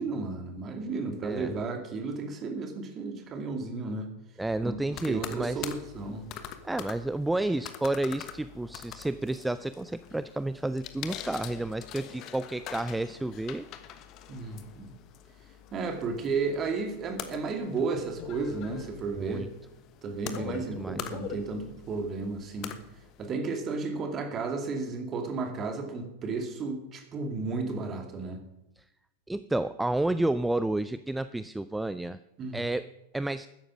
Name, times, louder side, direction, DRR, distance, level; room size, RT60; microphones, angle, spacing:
voice 1, 0.0-4.1 4.6-6.2 14.3-15.0 15.7-19.5 20.0-22.8 23.2-28.4 32.4-32.6, right 4 dB, 30° right, 5 dB, 2.4 m, -33 dB
voice 2, 4.4-5.7 6.6-13.7 19.1-19.5 20.4-21.0 28.8-28.9 29.3-32.2 32.5-33.5, right 2 dB, 5° right, 14 dB, 0.4 m, -31 dB
sound 1, 4.9-23.3, left 9 dB, 35° left, 1.2 m, -44 dB
13.0 x 9.9 x 6.2 m, 0.89 s
figure-of-eight pair, 90°, 0 cm